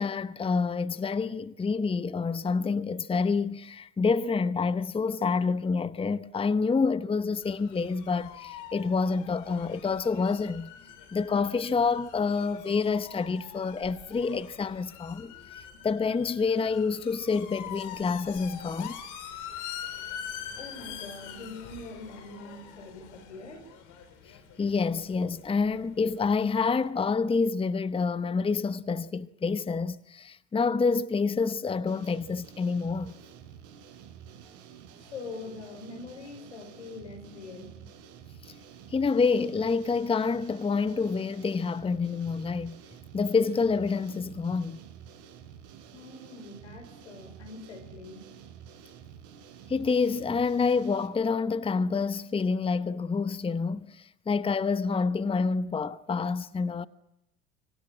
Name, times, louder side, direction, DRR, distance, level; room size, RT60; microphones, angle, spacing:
voice 1, 0.0-10.7 11.1-19.0 24.6-33.2 38.9-42.8 43.1-44.8 49.7-56.9, left 4 dB, 15° left, 0.9 m, -28 dB
sound 1, 7.4-26.9, left 9 dB, 60° left, 4.5 m, -45 dB
voice 2, 20.5-23.6 35.1-37.8 45.9-48.3, left 3 dB, 85° left, 5.2 m, -43 dB
sound 2, 31.9-51.1, right 8 dB, 60° right, 5.5 m, -50 dB
25.5 x 23.0 x 7.6 m
hypercardioid pair, 75°, 34 cm